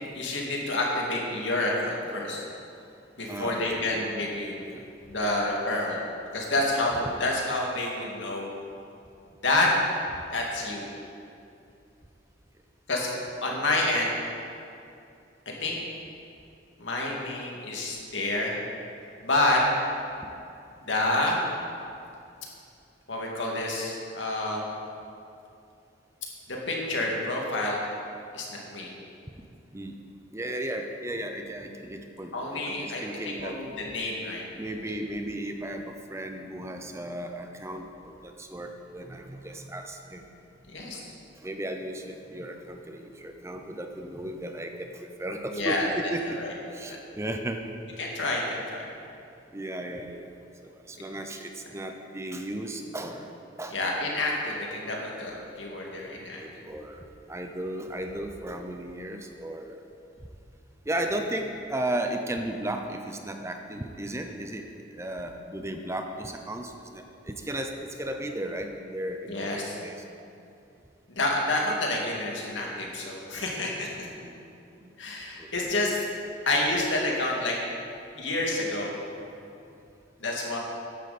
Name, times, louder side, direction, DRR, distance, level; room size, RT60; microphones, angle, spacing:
voice 1, 0.1-2.4 3.2-4.6 5.1-6.0 6.3-8.5 9.4-9.7 10.3-10.9 12.9-13.1 13.4-14.1 15.5-15.8 16.8-18.6 19.2-19.6 20.8-21.4 23.1-24.7 26.5-27.8 28.3-28.9 32.3-34.4 40.7-41.1 45.5-45.9 46.3-46.5 46.8-47.0 48.0-48.8 53.7-56.6 69.3-69.7 71.1-74.1 75.0-76.0 76.5-77.6 78.1-78.9 80.2-80.6, left 2 dB, 80° left, -2 dB, 2.3 m, -28 dB
voice 2, 3.3-4.3 4.7-4.9 5.2-5.3 29.7-30.0 30.3-33.6 34.6-40.2 41.4-46.2 46.7-47.6 49.5-50.3 50.8-53.3 53.6-53.8 55.3-55.4 56.0-59.8 60.9-64.6 64.9-70.0 74.0-74.4 74.8-74.9 75.4-75.5, right 1 dB, 15° right, 5 dB, 0.7 m, -35 dB
14.5 x 10.0 x 4.3 m, 2.6 s
head